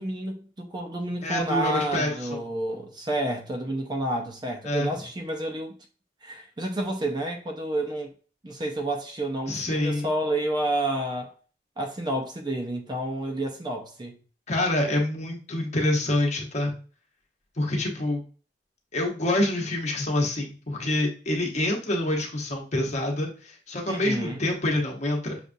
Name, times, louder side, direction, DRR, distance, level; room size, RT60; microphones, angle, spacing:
voice 1, 0.0-5.8 6.2-8.1 8.4-11.3 11.8-14.2 23.9-24.4, right 1 dB, 25° right, 0.5 m, -30 dB
voice 2, 1.2-2.4 4.6-4.9 9.5-10.1 14.5-16.7 17.6-18.2 18.9-25.4, left 1 dB, 40° left, 1.0 m, -26 dB
6.5 x 2.4 x 2.6 m
head